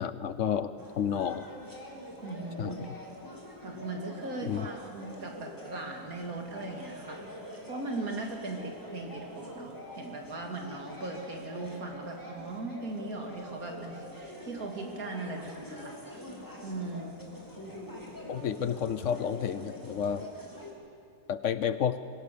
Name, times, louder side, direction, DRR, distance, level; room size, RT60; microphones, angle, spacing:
voice 1, 0.0-1.5 2.6-2.9 4.4-4.7 18.3-20.3 21.3-22.0, left 8 dB, 65° left, 13 dB, 0.9 m, -31 dB
sound 1, 0.8-20.7, equal, 15° left, 2.8 m, -45 dB
voice 2, 2.2-2.8 3.6-7.3 7.7-16.0 16.6-17.2, right 2 dB, 70° right, 1 dB, 2.8 m, -39 dB
24.0 x 16.5 x 6.8 m, 2.3 s
omnidirectional pair, 1.6 m